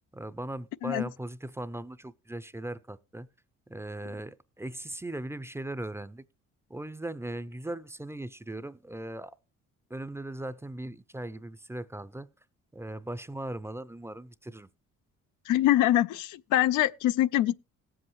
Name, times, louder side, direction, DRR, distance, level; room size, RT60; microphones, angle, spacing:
voice 1, 0.1-3.3 3.7-6.2 6.7-9.4 9.9-12.3 12.7-14.7, right 1 dB, 10° right, 0.5 m, -38 dB
voice 2, 15.5-17.6, left 13 dB, 85° left, 0.5 m, -24 dB
18.0 x 7.8 x 3.1 m
cardioid pair, 90°, 30 cm